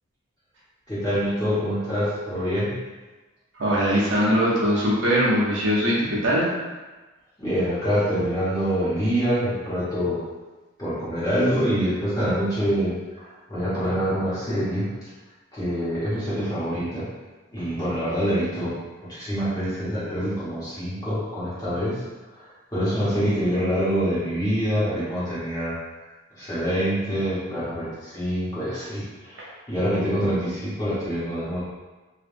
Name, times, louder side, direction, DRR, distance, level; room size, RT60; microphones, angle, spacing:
voice 1, 0.9-2.8 7.4-10.2 10.8-14.9 15.5-17.1 17.5-18.8 19.1-22.0 22.3-25.8 26.4-31.6, equal, 20° left, -11 dB, 1.1 m, -25 dB
voice 2, 3.6-6.5 29.4-29.5, equal, 60° right, -5 dB, 0.8 m, -21 dB
3.3 x 2.6 x 2.6 m, 1.2 s
head